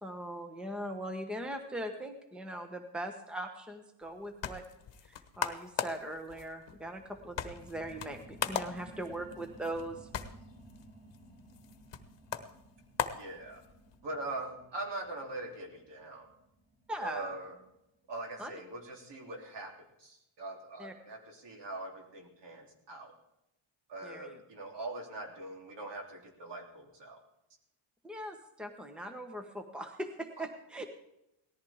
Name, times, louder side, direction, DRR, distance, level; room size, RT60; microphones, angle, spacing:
voice 1, 0.0-4.6 5.0-10.1 16.9-17.3 18.4-18.5 20.8-20.9 24.0-24.4 28.0-30.9, right 1 dB, ahead, 6 dB, 1.1 m, -40 dB
sound 1, 4.0-14.0, left 8 dB, 60° left, 1.2 m, -40 dB
sound 2, 6.7-17.8 18.3-18.4, right 1 dB, 20° right, 4.4 m, -56 dB
voice 2, 13.1-13.6 14.0-16.3 17.0-17.5 18.1-23.1 23.9-27.2 30.4-30.5, right 2 dB, 55° right, 1 dB, 3.3 m, -42 dB
18.5 x 14.5 x 3.6 m, 0.86 s
cardioid pair, 140°, 49 cm